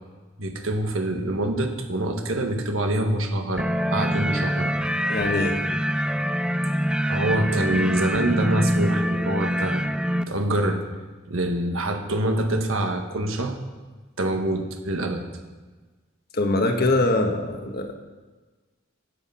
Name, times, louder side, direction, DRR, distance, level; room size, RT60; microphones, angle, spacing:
voice 1, 0.4-4.8 7.1-9.8 10.3-10.9 11.3-13.6 14.2-15.2, right 1 dB, 90° right, 5 dB, 1.5 m, -25 dB
sound 1, 3.6-10.2, equal, 5° right, 0.3 m, -25 dB
voice 2, 5.1-5.6 16.3-17.9, left 2 dB, 50° left, 4 dB, 1.4 m, -23 dB
12.5 x 8.1 x 5.7 m, 1.3 s
head